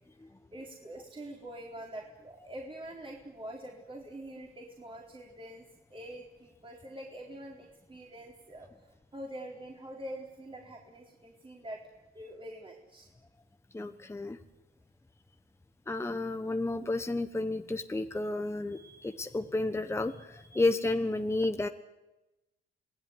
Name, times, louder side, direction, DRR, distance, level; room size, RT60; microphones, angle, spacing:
voice 1, 0.5-5.6 5.9-8.7 9.1-11.8 12.1-13.1, right 1 dB, 25° right, -1 dB, 4.4 m, -45 dB
voice 2, 13.7-14.4 15.9-21.7, left 2 dB, 15° left, 7 dB, 1.2 m, -31 dB
27.0 x 18.5 x 9.7 m, 1.0 s
cardioid pair, 90°, 20 cm